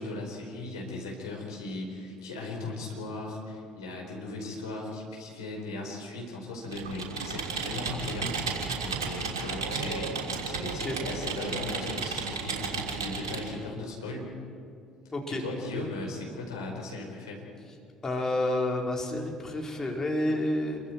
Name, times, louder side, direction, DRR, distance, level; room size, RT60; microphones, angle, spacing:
voice 1, 0.0-10.1 10.4-14.3 15.3-17.5, left 2 dB, 80° left, -1 dB, 5.0 m, -38 dB
Computer keyboard, 6.7-13.5, right 4 dB, 80° right, 3.0 m, -33 dB
voice 2, 15.1-15.4 18.0-20.8, left 1 dB, 25° left, 0 dB, 4.8 m, -29 dB
28.0 x 23.5 x 4.7 m, 2.5 s
figure-of-eight pair, 55°, 2 cm